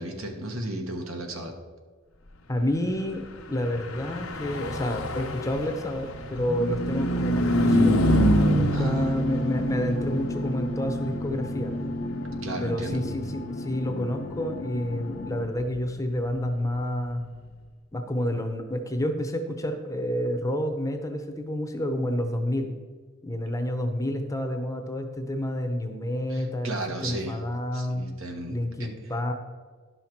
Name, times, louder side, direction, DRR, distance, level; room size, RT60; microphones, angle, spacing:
voice 1, 0.0-1.5 8.7-9.1 12.4-13.0 26.3-27.4 27.7-28.9, right 1 dB, 70° right, 4 dB, 1.3 m, -34 dB
voice 2, 2.5-11.7 12.6-17.2 17.9-22.7 23.2-26.8 27.0-28.0 28.5-29.3, left 1 dB, 15° left, 6 dB, 0.7 m, -29 dB
Car passing by / Truck, 3.6-17.3, equal, 90° left, 0.9 m, -27 dB
sound 1, 9.3-15.5, left 3 dB, 50° left, 0.5 m, -37 dB
11.0 x 5.7 x 4.5 m, 1.4 s
head